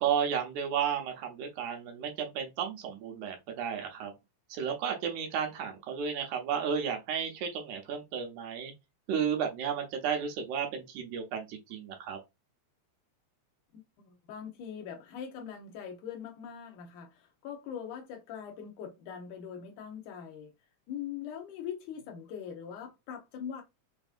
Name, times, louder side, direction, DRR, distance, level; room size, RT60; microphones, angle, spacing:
voice 1, 0.0-4.1 4.5-8.7 9.1-12.2, right 7 dB, 85° right, 2.3 m, -33 dB
voice 2, 13.7-20.5 20.9-23.6, left 8 dB, 85° left, 2.4 m, -42 dB
5.7 x 2.6 x 2.5 m
omnidirectional pair, 3.4 m